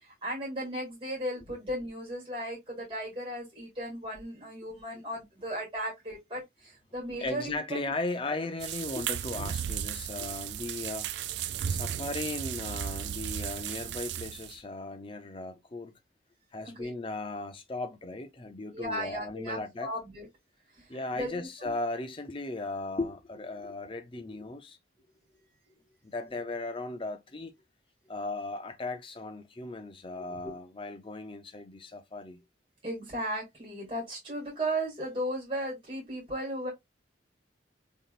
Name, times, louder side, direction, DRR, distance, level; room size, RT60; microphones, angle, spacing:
voice 1, 0.0-7.8 16.6-16.9 18.7-20.3 20.8-20.9 21.1-21.7 30.1-30.2 32.8-36.7, right 1 dB, 25° right, 2.4 m, -36 dB
voice 2, 7.2-11.4 11.7-15.9 16.5-19.9 20.9-24.8 26.0-27.5 28.1-32.4, left 2 dB, 30° left, 0.6 m, -37 dB
sound 1, 8.6-14.6, right 9 dB, 65° right, 0.3 m, -35 dB
3.9 x 3.6 x 2.5 m
head